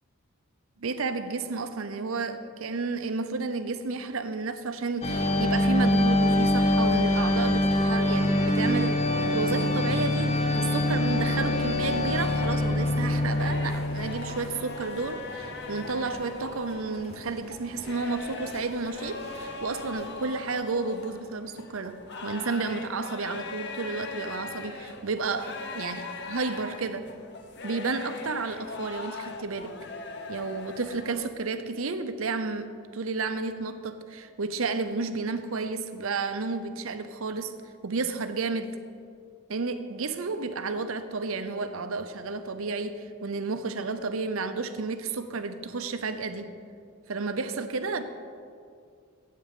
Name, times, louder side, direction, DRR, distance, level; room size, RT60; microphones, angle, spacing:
voice 1, 0.8-27.1 27.6-29.8 30.3-37.5 37.8-38.8 39.5-46.5 47.1-48.0, right 4 dB, 80° right, 9 dB, 0.7 m, -32 dB
sound 1, 5.0-20.3, left 1 dB, 30° left, 1.0 m, -26 dB
sound 2, 12.3-31.3, left 3 dB, 55° left, 0.8 m, -40 dB
8.3 x 8.2 x 7.6 m, 2.2 s
head